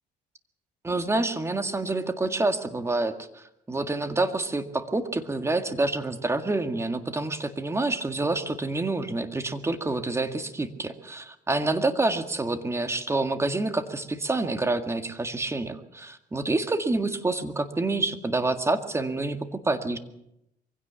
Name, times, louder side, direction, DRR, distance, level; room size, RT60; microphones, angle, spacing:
voice 1, 0.8-20.0, right 2 dB, 15° right, 7 dB, 1.9 m, -27 dB
23.5 x 16.5 x 7.1 m, 0.82 s
cardioid pair, 110°, 17 cm